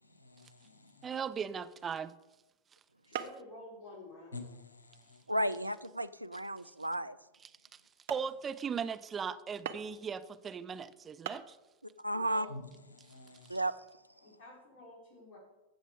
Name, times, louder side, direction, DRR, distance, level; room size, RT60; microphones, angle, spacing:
voice 1, 0.0-1.1 4.3-5.3 12.5-13.7 14.1-14.4, left 2 dB, 75° left, 1.4 m, -50 dB
voice 2, 1.0-2.1 8.1-11.4, right 6 dB, 20° right, 0.6 m, -38 dB
sound 1, 2.1-2.2 3.1-3.5 3.9-4.3 4.9-5.0 5.6-5.8 6.5-6.6 7.1-7.2 7.7-7.8 8.1-8.3 9.7-10.1 10.9-11.0 11.3-11.5, right 10 dB, 55° right, 0.8 m, -42 dB
voice 3, 3.0-4.5 12.1-12.5 14.2-15.4, left 1 dB, 35° left, 4.9 m, -51 dB
voice 4, 5.3-7.2 12.0-12.5 13.5-13.7, right 1 dB, 85° right, 0.4 m, -33 dB
15.0 x 6.7 x 4.9 m
figure-of-eight pair, 90°, 0 cm